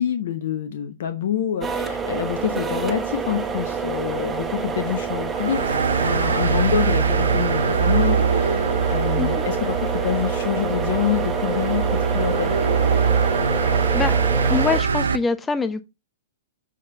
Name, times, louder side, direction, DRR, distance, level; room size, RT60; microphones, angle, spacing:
voice 1, 0.0-11.8 12.1-12.6, left 9 dB, 55° left, 1.0 m, -26 dB
sound 1, 1.6-14.8, right 5 dB, 15° right, 1.1 m, -27 dB
sound 2, 5.3-15.2, right 5 dB, 70° right, 0.7 m, -22 dB
voice 2, 13.7-14.1 14.5-15.8, left 5 dB, 15° left, 0.6 m, -24 dB
7.5 x 4.5 x 5.3 m
figure-of-eight pair, 105°, 0 cm